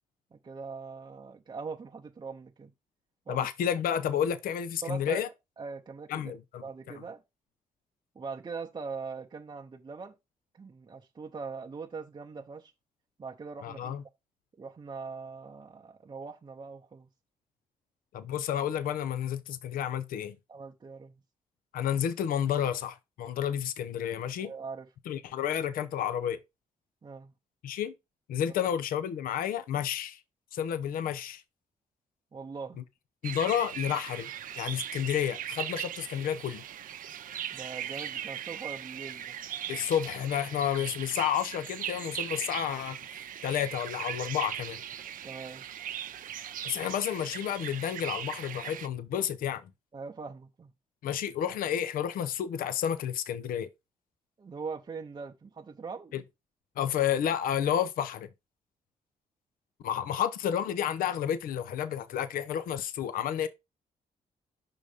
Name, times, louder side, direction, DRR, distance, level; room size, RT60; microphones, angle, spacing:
voice 1, 0.3-2.7 3.3-3.5 4.8-5.2 5.6-6.4 6.6-7.2 8.1-10.1 10.5-12.7 13.2-14.0 14.6-17.1 20.5-21.2 24.4-24.9 27.0-27.3 28.5-28.6 32.3-32.8 37.5-39.4 45.2-45.7 49.9-50.7 54.4-56.1, right 5 dB, 30° right, 0.7 m, -41 dB
voice 2, 3.3-5.3 6.1-6.6 13.6-14.0 18.1-20.4 21.7-24.5 25.1-26.4 27.6-27.9 28.3-30.2 30.5-31.4 33.2-34.3 34.6-36.6 39.7-43.0 43.4-44.8 46.6-49.7 51.0-53.7 56.1-56.2 56.8-58.3 59.8-63.5, left 9 dB, 80° left, 0.6 m, -31 dB
sound 1, 33.2-48.9, right 10 dB, 70° right, 0.6 m, -39 dB
5.5 x 3.8 x 4.9 m
cardioid pair, 70°, 15 cm